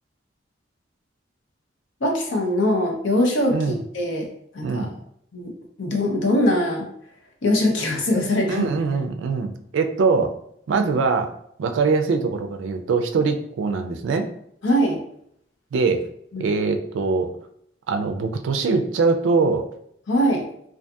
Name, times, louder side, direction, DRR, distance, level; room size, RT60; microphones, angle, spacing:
voice 1, 2.0-4.3 4.5-4.9 5.3-5.5 5.8-6.9 7.4-8.7 14.6-15.0 16.3-16.5 20.1-20.4, left 1 dB, 80° left, 1 dB, 0.6 m, -22 dB
voice 2, 4.6-4.9 8.5-10.3 10.7-11.3 11.6-14.3 15.7-16.0 16.4-17.3 17.9-19.7, right 4 dB, 85° right, 6 dB, 0.3 m, -22 dB
2.6 x 2.4 x 2.3 m, 0.71 s
head